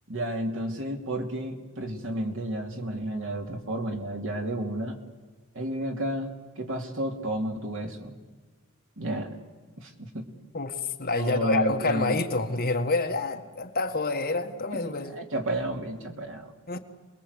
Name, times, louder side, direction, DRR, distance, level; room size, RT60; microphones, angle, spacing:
voice 1, 0.1-5.0 5.5-8.1 9.0-9.3 9.8-10.3 11.1-12.1 14.7-16.5, right 1 dB, 60° right, 4 dB, 2.9 m, -32 dB
voice 2, 10.5-15.2 16.7-16.8, left 3 dB, 45° left, 5 dB, 1.7 m, -27 dB
28.5 x 21.0 x 8.3 m, 1.4 s
head